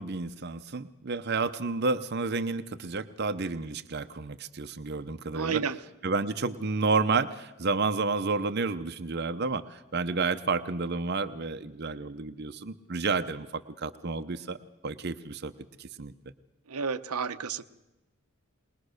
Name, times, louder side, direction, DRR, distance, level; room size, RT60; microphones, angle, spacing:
voice 1, 0.0-5.6 6.0-14.6 14.8-15.5 15.8-16.1, right 4 dB, 45° right, 9 dB, 0.7 m, -30 dB
voice 2, 5.3-5.8 16.7-17.6, right 6 dB, 85° right, 10 dB, 0.9 m, -31 dB
21.5 x 20.5 x 6.5 m, 1.0 s
head